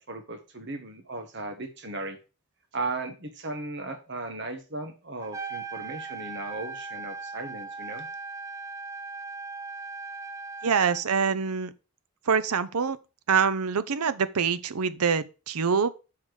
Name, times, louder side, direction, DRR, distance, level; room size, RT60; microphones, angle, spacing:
voice 1, 0.0-2.2 2.7-8.1, right 2 dB, 50° right, 1.3 m, -36 dB
Trumpet, 5.2-11.0, right 4 dB, 15° right, 0.5 m, -38 dB
voice 2, 10.6-11.7 12.3-13.0 13.3-15.9, right 6 dB, 85° right, 0.6 m, -25 dB
5.7 x 4.8 x 6.4 m
head